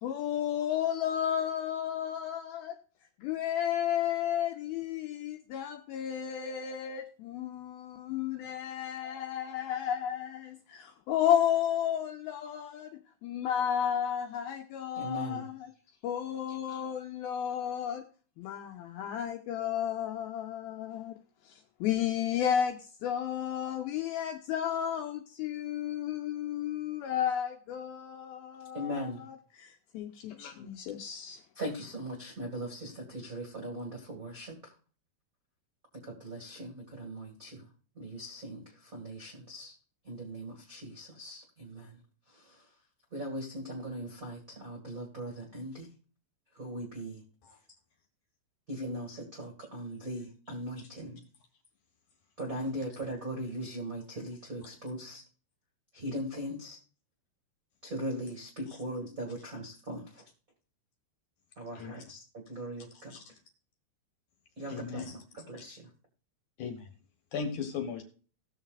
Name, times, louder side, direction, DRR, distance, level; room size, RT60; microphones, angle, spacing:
voice 1, 0.0-2.8 3.2-15.5 16.0-18.0 18.4-21.2 21.5-29.3 29.6-31.4, left 9 dB, 80° left, 4 dB, 2.3 m, -32 dB
voice 2, 14.9-15.5 28.7-29.2 31.5-34.7 36.0-39.8 40.0-42.0 42.3-42.7 43.1-45.9 46.5-47.2 48.7-51.3 52.4-55.2 55.9-56.8 57.8-60.3 61.6-63.2 64.6-65.1 65.3-65.9, equal, 50° right, 0 dB, 0.9 m, -39 dB
voice 3, 64.7-65.2 66.6-66.9 67.3-68.0, left 6 dB, 60° left, 5 dB, 2.3 m, -37 dB
19.0 x 7.1 x 2.5 m, 0.39 s
omnidirectional pair, 5.0 m